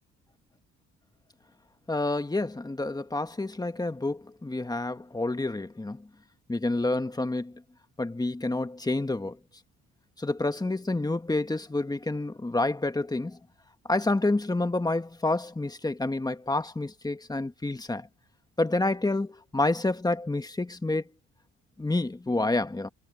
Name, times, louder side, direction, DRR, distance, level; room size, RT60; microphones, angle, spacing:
voice 1, 1.9-6.1 6.5-7.6 8.0-9.4 10.2-13.4 13.9-18.1 18.6-21.0 21.8-22.9, left 2 dB, 15° left, 1.5 m, -28 dB
cardioid pair, 90°, 30 cm